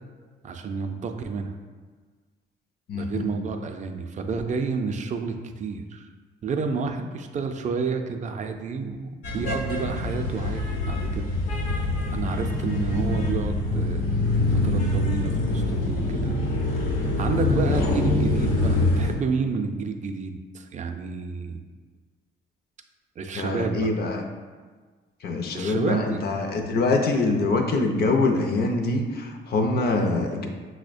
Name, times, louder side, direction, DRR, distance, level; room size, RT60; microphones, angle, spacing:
voice 1, 0.4-1.5 2.9-6.1 6.4-11.3 12.1-14.0 14.5-16.4 16.6-16.8 17.2-21.6 23.2-23.9 25.5-26.2, right 5 dB, 40° right, 5 dB, 0.4 m, -30 dB
voice 2, 2.9-3.3 23.3-24.2 25.2-30.5, left 3 dB, 55° left, 4 dB, 0.5 m, -24 dB
sound 1, 9.2-19.1, left 2 dB, 85° left, 0.9 m, -25 dB
6.0 x 2.1 x 2.5 m, 1.5 s
cardioid pair, 90°, 20 cm